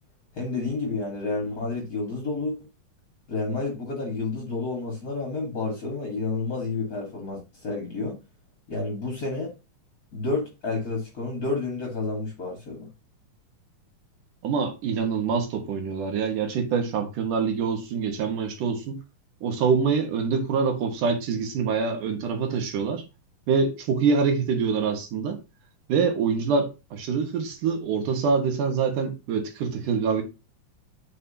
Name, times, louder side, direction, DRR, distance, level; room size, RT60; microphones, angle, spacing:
voice 1, 0.3-2.6 3.3-8.2 8.7-9.5 10.1-12.9, left 3 dB, 35° left, 1.8 m, -30 dB
voice 2, 14.4-19.0 19.4-23.0 23.5-25.4 25.9-30.2, right 5 dB, 75° right, 3.0 m, -25 dB
9.4 x 5.5 x 2.9 m
omnidirectional pair, 3.7 m